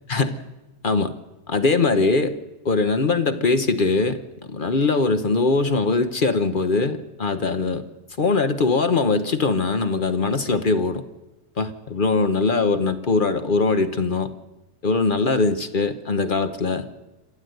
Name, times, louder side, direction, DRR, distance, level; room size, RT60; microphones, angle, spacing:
voice 1, 0.1-0.4 0.8-1.1 1.5-2.4 2.6-7.8 8.2-11.0 11.6-14.3 14.8-16.9, left 3 dB, 45° left, 9 dB, 0.6 m, -21 dB
27.0 x 12.5 x 7.9 m, 1.0 s
omnidirectional pair, 2.1 m